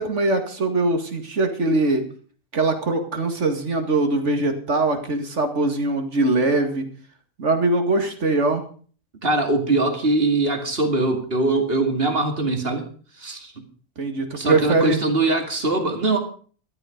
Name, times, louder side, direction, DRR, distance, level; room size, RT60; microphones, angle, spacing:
voice 1, 0.0-2.1 2.5-6.9 7.4-8.6 14.0-15.0, right 2 dB, 80° right, 5 dB, 2.5 m, -22 dB
voice 2, 9.2-12.9 13.2-13.5 14.3-16.2, right 2 dB, 55° right, 4 dB, 2.5 m, -22 dB
13.0 x 12.0 x 5.2 m, 0.42 s
omnidirectional pair, 1.2 m